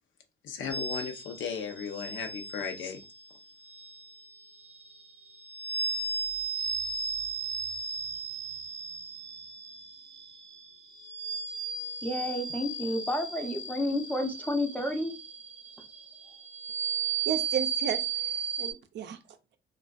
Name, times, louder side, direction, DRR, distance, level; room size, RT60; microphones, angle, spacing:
voice 1, 0.4-3.0, left 6 dB, 75° left, 0.6 m, -36 dB
sound 1, 0.7-18.7, right 5 dB, 35° right, 0.8 m, -36 dB
voice 2, 12.0-15.1, left 1 dB, 5° left, 0.5 m, -30 dB
voice 3, 17.3-19.6, right 8 dB, 60° right, 0.4 m, -34 dB
2.5 x 2.3 x 2.3 m
cardioid pair, 90°, 20 cm